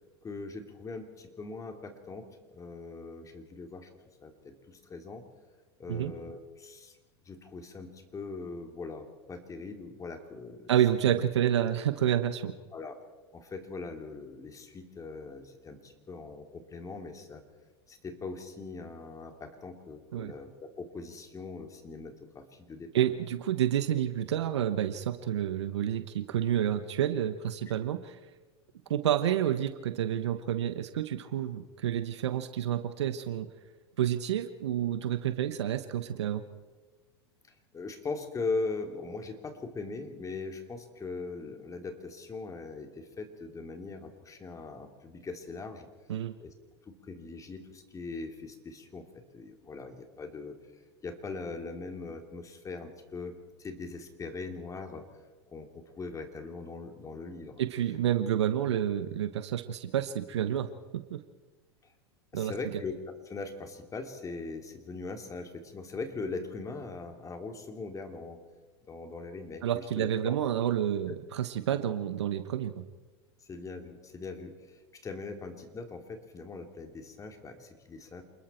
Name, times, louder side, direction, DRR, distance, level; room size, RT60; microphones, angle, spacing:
voice 1, 0.2-3.9 4.2-5.2 5.8-7.0 7.2-10.7 12.7-13.0 13.3-17.4 17.9-22.9 27.7-27.8 37.7-45.9 46.4-46.5 46.8-50.5 51.0-55.0 55.5-57.6 61.8-61.9 62.3-63.0 63.2-68.4 68.9-70.4 73.4-78.2, left 3 dB, 20° left, 5 dB, 3.2 m, -40 dB
voice 2, 10.7-12.5 20.1-20.3 22.9-28.2 28.9-33.5 34.0-36.4 46.1-46.4 57.6-60.7 61.1-61.2 62.3-62.5 69.6-72.8, right 10 dB, 80° right, 10 dB, 1.1 m, -29 dB
28.0 x 21.0 x 4.5 m, 1.3 s
hypercardioid pair, 95°, 14 cm